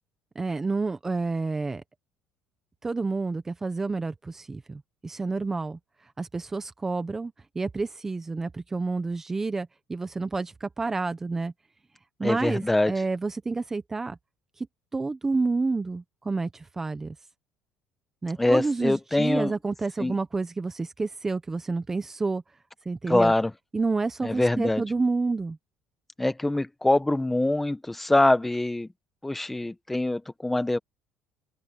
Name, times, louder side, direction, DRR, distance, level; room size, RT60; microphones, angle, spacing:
voice 1, 0.3-1.8 2.8-5.8 6.2-11.5 12.2-14.2 14.6-14.7 14.9-17.1 18.2-22.4 22.8-23.3 23.7-25.6, right 3 dB, 15° right, 1.1 m, -29 dB
voice 2, 12.2-12.9 18.4-19.5 20.0-20.2 23.1-23.5 24.2-24.8 26.2-28.9 29.2-30.8, left 2 dB, 10° left, 1.5 m, -24 dB
open air
cardioid pair, 120°, 2 cm